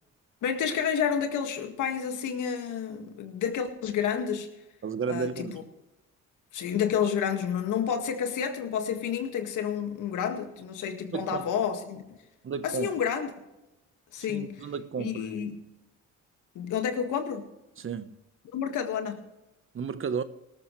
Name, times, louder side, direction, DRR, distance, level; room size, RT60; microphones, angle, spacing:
voice 1, 0.4-4.5 5.1-5.6 6.5-12.2 12.6-13.3 14.1-14.5 15.0-15.6 16.6-17.5 18.5-19.2, left 8 dB, 80° left, 1.9 m, -30 dB
voice 2, 4.8-5.6 11.1-11.4 12.4-12.9 14.3-15.2 17.8-18.1 19.7-20.2, right 6 dB, 45° right, 1.0 m, -33 dB
18.5 x 13.5 x 3.2 m
cardioid pair, 90°, 30 cm